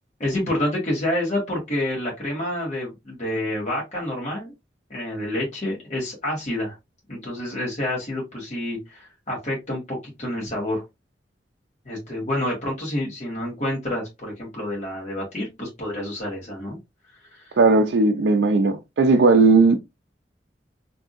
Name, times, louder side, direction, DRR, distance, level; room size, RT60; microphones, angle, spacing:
voice 1, 0.2-4.5 4.9-6.8 7.1-10.8 11.8-16.8 17.3-17.6, left 1 dB, 40° left, 1.6 m, -28 dB
voice 2, 17.6-19.8, right 3 dB, 80° right, 0.4 m, -17 dB
3.5 x 2.6 x 2.4 m
head